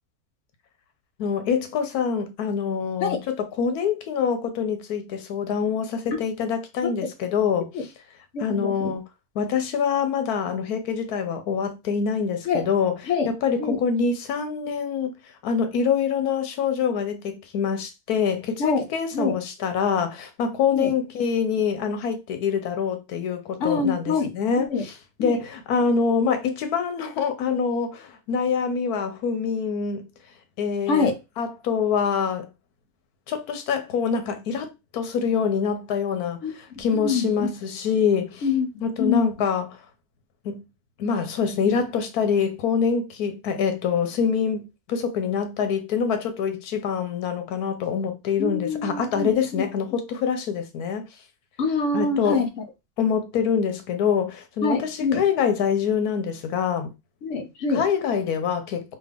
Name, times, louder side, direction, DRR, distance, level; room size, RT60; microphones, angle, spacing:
voice 1, 1.2-7.7 8.4-9.0 9.3-13.0 13.2-24.9 25.2-30.1 30.6-31.1 31.4-32.5 33.3-38.5 38.8-39.8 40.4-40.6 41.0-51.0 51.9-52.4 53.0-56.9 57.7-59.0, left 6 dB, 80° left, 1.2 m, -25 dB
voice 2, 8.3-8.9 12.5-12.7 13.1-13.3 13.6-13.8 18.6-18.9 19.1-19.4 20.7-20.9 23.6-24.8 25.2-25.4 30.9-31.2 36.4-37.5 38.4-39.3 48.4-49.6 51.6-52.5 54.6-55.2 57.2-57.8, left 4 dB, 60° left, 1.0 m, -25 dB
3.3 x 2.4 x 3.4 m
omnidirectional pair, 1.6 m